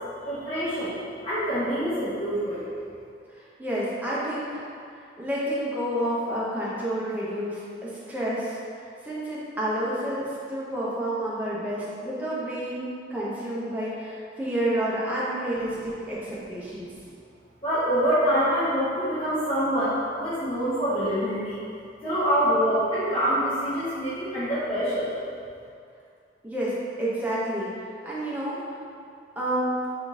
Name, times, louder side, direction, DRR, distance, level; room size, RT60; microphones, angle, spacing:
voice 1, 0.2-1.0 1.2-2.6 16.9-17.0 17.6-21.6 22.0-25.1, equal, 30° left, -14 dB, 0.8 m, -25 dB
voice 2, 3.3-4.7 5.0-16.9 26.4-27.7 28.0-28.8 29.4-29.8, right 1 dB, 10° right, -8 dB, 0.6 m, -30 dB
3.5 x 2.6 x 3.6 m, 2.4 s
head